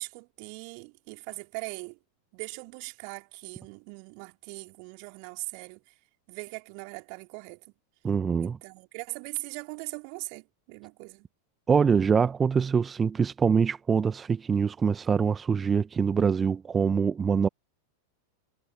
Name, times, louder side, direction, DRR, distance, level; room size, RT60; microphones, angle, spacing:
voice 1, 0.0-2.0 2.3-5.9 6.3-7.7 8.4-11.3, right 40 dB or more, 45° right, 3.6 m, -40 dB
voice 2, 8.0-8.6 11.7-17.5, right 6 dB, 20° right, 1.2 m, -24 dB
figure-of-eight pair, 90°, 0 cm